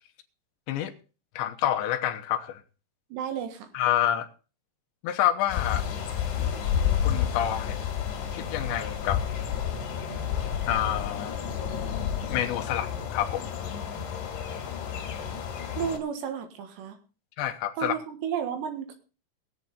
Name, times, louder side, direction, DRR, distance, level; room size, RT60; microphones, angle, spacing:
voice 1, 1.4-2.6 3.7-4.3 5.0-5.8 7.0-7.8 8.3-9.2 10.6-11.3 12.3-13.5 17.4-17.9, left 11 dB, 75° left, 3.1 m, -28 dB
voice 2, 3.1-3.7 15.8-17.0 17.8-18.9, right 8 dB, 70° right, 3.5 m, -32 dB
sound 1, 5.5-16.0, left 8 dB, 60° left, 3.9 m, -30 dB
21.0 x 7.7 x 4.1 m
omnidirectional pair, 5.6 m